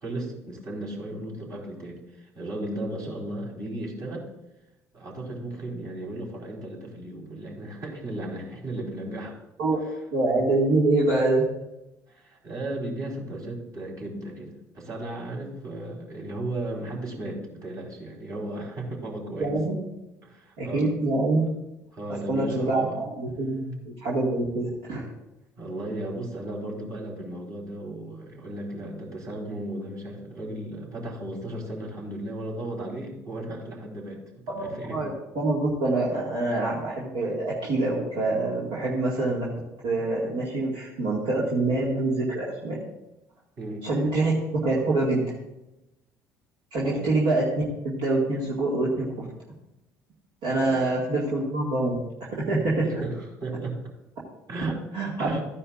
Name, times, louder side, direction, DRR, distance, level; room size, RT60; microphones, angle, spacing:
voice 1, 0.0-4.3 4.9-9.4 12.1-19.5 20.2-21.0 21.9-23.0 25.6-35.0 39.2-39.3 43.6-43.9 46.8-47.1 50.6-50.9 53.0-53.8 54.5-54.8 55.2-55.4, right 1 dB, 40° right, -1 dB, 4.0 m, -35 dB
voice 2, 10.1-11.5 19.4-19.8 20.6-21.4 22.3-25.1 34.5-35.1 35.3-39.5 39.8-42.8 43.8-44.3 44.6-45.3 46.7-47.5 47.8-49.3 50.4-52.0 52.5-53.0 54.9-55.3, right 2 dB, 60° right, -6 dB, 2.1 m, -25 dB
14.5 x 9.8 x 2.5 m, 0.92 s
figure-of-eight pair, 55°, 9 cm